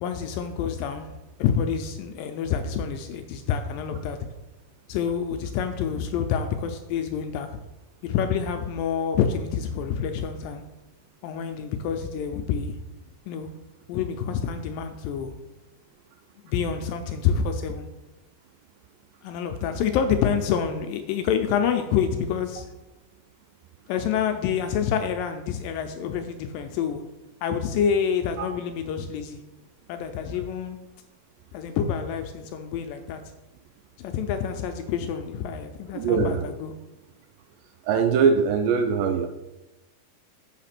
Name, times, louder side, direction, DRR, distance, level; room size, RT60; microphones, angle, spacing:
voice 1, 0.0-1.1 1.4-4.2 4.9-7.5 8.0-10.6 11.2-12.7 13.3-13.5 13.9-15.3 16.4-17.9 19.2-22.7 23.9-27.0 27.4-29.4 29.9-30.8 31.5-33.2 34.0-36.7, left 7 dB, 80° left, 6 dB, 2.1 m, -27 dB
voice 2, 35.9-36.4 37.9-39.3, right 6 dB, 80° right, 6 dB, 2.1 m, -22 dB
7.3 x 4.8 x 5.9 m, 1.0 s
omnidirectional pair, 4.3 m